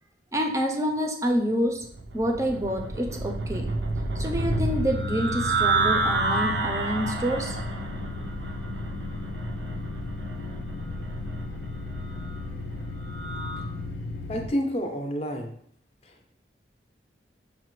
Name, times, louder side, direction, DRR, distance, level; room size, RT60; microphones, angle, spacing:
voice 1, 0.3-1.9 2.1-3.7 4.2-7.6, equal, 20° right, 3 dB, 0.4 m, -27 dB
sound 1, 1.8-13.7, right 3 dB, 85° right, 0.5 m, -30 dB
sound 2, 4.4-14.5, left 3 dB, 90° left, 0.5 m, -34 dB
voice 2, 14.3-15.6 16.0-16.4, equal, 35° left, 3 dB, 0.5 m, -30 dB
5.7 x 2.1 x 3.0 m, 0.63 s
head